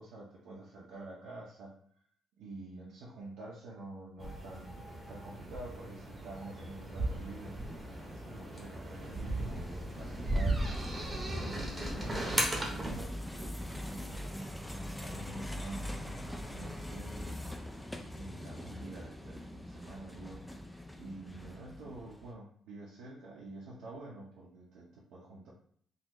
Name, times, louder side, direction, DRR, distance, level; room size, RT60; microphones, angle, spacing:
voice 1, 0.0-1.8 2.3-7.6 8.1-10.8 11.3-14.3 15.0-17.4 18.1-20.4 20.9-25.5, right 2 dB, 90° right, -6 dB, 0.8 m, -48 dB
sound 1, 4.2-13.1, right 1 dB, 15° right, 0.9 m, -36 dB
sound 2, 7.3-22.3, left 1 dB, 5° left, 0.3 m, -43 dB
3.9 x 2.5 x 3.0 m, 0.62 s
cardioid pair, 135°, 0 cm